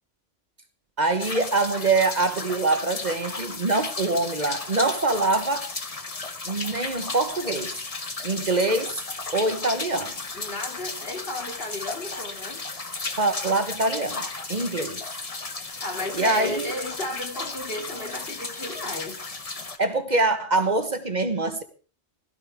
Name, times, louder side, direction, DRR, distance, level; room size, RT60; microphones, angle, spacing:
voice 1, 1.0-5.6 6.5-7.7 8.2-8.9 9.3-10.1 13.2-15.0 16.1-16.7 19.8-21.6, right 2 dB, 40° right, 1.3 m, -24 dB
sound 1, 1.2-19.8, left 3 dB, 35° left, 1.3 m, -34 dB
voice 2, 10.3-12.8 15.7-19.2, left 1 dB, 60° left, 2.9 m, -34 dB
16.5 x 16.0 x 3.5 m
omnidirectional pair, 1.1 m